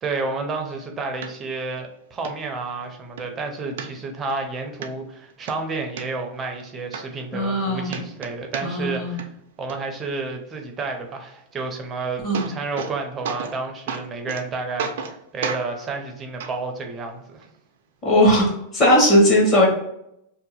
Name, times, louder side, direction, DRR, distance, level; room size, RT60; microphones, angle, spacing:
voice 1, 0.0-9.3 9.6-17.4, right 3 dB, 20° right, 4 dB, 0.5 m, -30 dB
sound 1, 1.2-1.3 1.8-1.9 2.2-2.3 2.8-3.3 3.8-4.4 4.8-4.9 5.3-6.0 6.6-6.7 6.9-7.6 7.9-8.9 9.2-9.7 11.8-11.9 12.1-13.0 13.2-13.6 13.9-14.4 14.8-15.2 15.4-15.6 16.4-16.5 17.4-17.5, right 6 dB, 75° right, 0.4 m, -31 dB
voice 2, 7.3-8.0 8.6-9.2 12.2-12.5 18.0-18.5 18.7-19.7, equal, 30° left, -2 dB, 1.1 m, -18 dB
2.7 x 2.1 x 4.0 m, 0.78 s
supercardioid pair, 150°, 0 cm